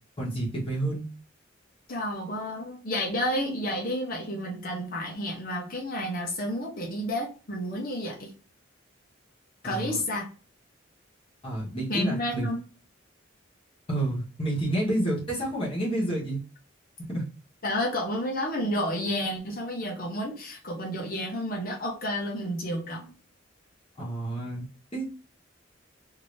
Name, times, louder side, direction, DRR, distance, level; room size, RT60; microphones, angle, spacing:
voice 1, 0.2-1.0 9.6-10.0 11.4-12.5 13.9-16.4 17.1-17.2 24.0-24.6 24.9-25.1, right 1 dB, 30° left, -6 dB, 1.2 m, -29 dB
voice 2, 1.9-8.3 9.6-10.3 11.9-12.6 17.6-23.1, equal, 50° left, 0 dB, 0.9 m, -31 dB
2.8 x 2.7 x 3.2 m, 0.35 s
head